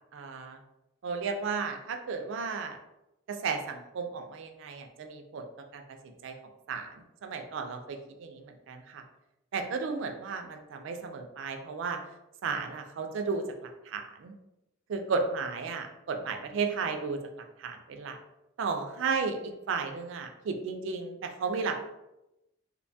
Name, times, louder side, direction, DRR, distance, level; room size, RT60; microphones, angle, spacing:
voice 1, 0.1-0.6 1.0-2.8 3.3-5.4 5.7-6.3 6.7-6.9 7.2-9.0 9.5-12.0 12.4-14.3 14.9-17.2 17.6-18.2 18.6-21.8, right 5 dB, 65° right, 5 dB, 0.3 m, -34 dB
2.6 x 2.2 x 2.6 m, 0.91 s
head